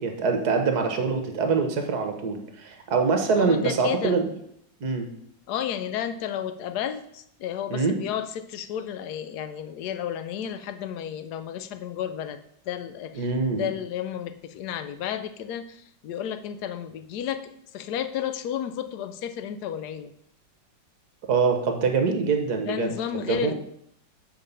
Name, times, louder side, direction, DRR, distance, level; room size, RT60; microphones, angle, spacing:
voice 1, 0.0-4.3 4.8-5.1 7.7-8.0 13.2-13.7 21.3-23.5, right 5 dB, 60° right, 5 dB, 1.5 m, -24 dB
voice 2, 3.4-4.2 5.5-12.4 12.7-13.3 13.5-20.1 22.6-23.5, left 9 dB, 70° left, 10 dB, 1.0 m, -32 dB
7.4 x 4.9 x 5.4 m, 0.73 s
omnidirectional pair, 2.1 m